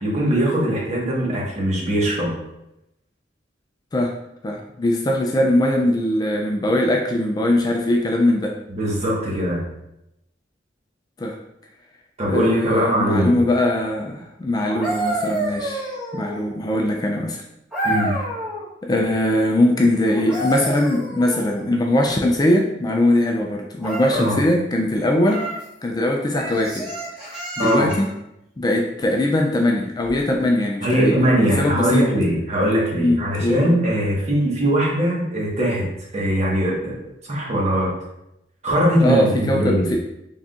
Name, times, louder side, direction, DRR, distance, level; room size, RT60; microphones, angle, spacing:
voice 1, 0.0-2.3 8.8-9.6 12.2-13.3 17.8-18.2 24.1-24.4 27.6-27.9 30.8-35.9 36.1-37.0 37.3-37.9 38.6-39.9, equal, 40° right, -4 dB, 1.2 m, -21 dB
voice 2, 4.4-8.6 11.2-11.4 12.3-17.4 18.8-25.5 25.8-26.9 27.6-28.1 28.6-31.2 31.4-32.1 32.9-33.6 39.0-40.0, left 1 dB, 20° left, 1 dB, 0.3 m, -21 dB
sound 1, 14.6-16.6 17.7-18.7 20.1-21.7 23.8-24.4 25.2-25.7 26.3-28.1 30.0-30.2, right 1 dB, 5° right, 1.2 m, -28 dB
4.0 x 3.5 x 2.4 m, 0.86 s
head